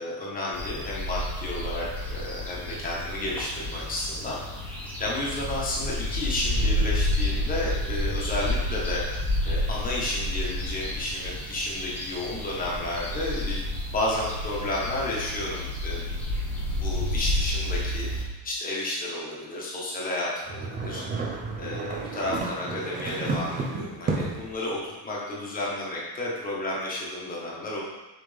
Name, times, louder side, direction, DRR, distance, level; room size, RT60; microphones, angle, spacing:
voice 1, 0.0-4.4 5.0-9.0 9.4-16.1 16.7-27.8, left 1 dB, 20° left, -5 dB, 1.4 m, -32 dB
sound 1, 0.5-18.2, left 1 dB, 5° left, 0.9 m, -30 dB
sound 2, 20.5-24.5, right 3 dB, 20° right, 0.5 m, -32 dB
6.0 x 5.1 x 3.4 m, 1.1 s
cardioid pair, 165°, 44 cm